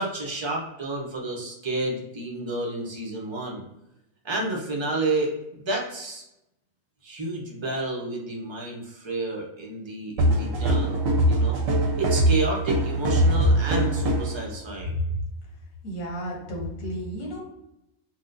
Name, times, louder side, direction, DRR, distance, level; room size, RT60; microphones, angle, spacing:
voice 1, 0.0-3.6 4.2-6.2 7.0-11.0 11.3-11.6 12.0-15.0, right 2 dB, 40° right, -1 dB, 0.4 m, -30 dB
sound 1, 10.2-14.4, right 1 dB, 80° right, 1.0 m, -22 dB
voice 2, 15.8-17.4, equal, 85° left, -2 dB, 1.4 m, -32 dB
4.3 x 2.1 x 2.5 m, 0.88 s
omnidirectional pair, 1.4 m